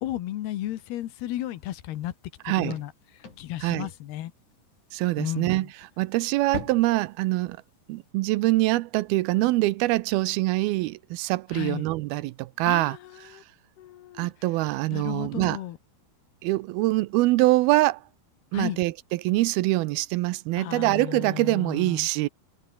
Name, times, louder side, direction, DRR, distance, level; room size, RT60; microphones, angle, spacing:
voice 1, 0.0-2.1 2.5-4.3 5.2-5.7 11.5-11.9 12.7-13.4 13.8-14.3 14.9-15.8 18.5-18.8 20.6-22.1, left 13 dB, 85° left, 3.4 m, -34 dB
Car Open Close, 1.0-8.1, left 5 dB, 50° left, 6.3 m, -46 dB
voice 2, 2.5-2.8 3.6-3.9 4.9-5.7 6.0-7.6 7.9-13.0 13.3-13.4 14.2-15.6 16.4-18.0 18.5-22.3, right 19 dB, 85° right, 2.5 m, -24 dB
omnidirectional pair, 4.5 m